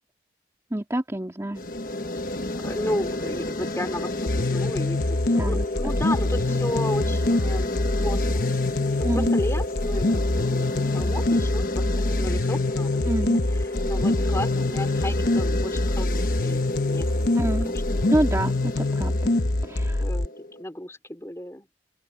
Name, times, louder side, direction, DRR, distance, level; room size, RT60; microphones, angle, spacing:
voice 1, 0.7-1.6 5.4-5.7 9.0-9.3 13.1-13.4 17.4-17.7 18.1-19.3 19.6-20.0, right 1 dB, 15° right, 2.0 m, -27 dB
sound 1, 1.5-20.6, left 2 dB, 50° left, 1.3 m, -31 dB
voice 2, 2.6-8.5 9.0-13.0 13.5-17.1 17.4-17.8 20.0-20.3 20.6-21.7, left 1 dB, 15° left, 3.3 m, -34 dB
sound 2, 4.3-20.3, left 2 dB, 65° left, 1.0 m, -25 dB
open air
head